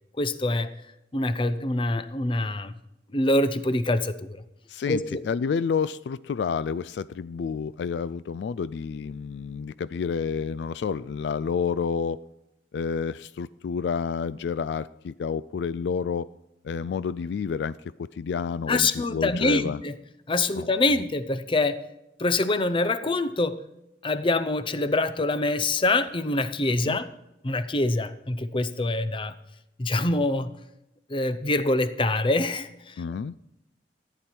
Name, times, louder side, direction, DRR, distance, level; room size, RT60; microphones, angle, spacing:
voice 1, 0.2-0.7 1.1-2.7 3.1-4.4 4.9-5.2 18.7-19.9 20.3-21.8 22.2-23.6 24.0-27.1 27.4-29.4 29.8-30.5 31.1-32.9, left 2 dB, 30° left, 12 dB, 0.7 m, -25 dB
voice 2, 4.7-12.2 12.7-16.3 16.6-19.8 20.6-20.7 26.9-27.0 33.0-33.3, left 6 dB, 70° left, 17 dB, 0.3 m, -29 dB
14.5 x 10.0 x 4.4 m, 0.87 s
head